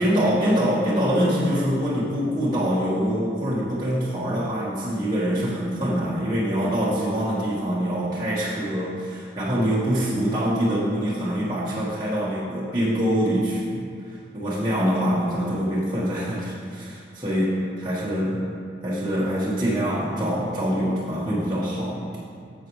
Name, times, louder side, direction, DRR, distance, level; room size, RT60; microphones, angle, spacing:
voice 1, 0.0-18.4 18.8-22.1, equal, 20° right, -10 dB, 1.3 m, -24 dB
10.5 x 7.5 x 3.1 m, 2.5 s
head